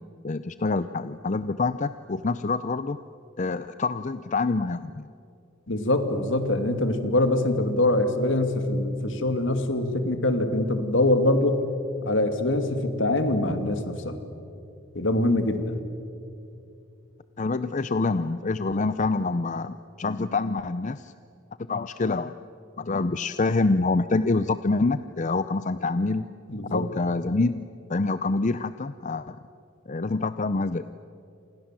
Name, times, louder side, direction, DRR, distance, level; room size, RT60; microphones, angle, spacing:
voice 1, 0.2-3.0 3.4-5.1 17.4-21.1 21.7-22.3 22.8-26.3 26.7-29.4 29.9-30.9, left 3 dB, 35° left, 13 dB, 0.6 m, -26 dB
voice 2, 5.7-11.6 12.0-14.2 14.9-15.8 26.5-26.9, left 1 dB, 65° left, 8 dB, 2.5 m, -24 dB
28.5 x 27.5 x 7.6 m, 2.7 s
head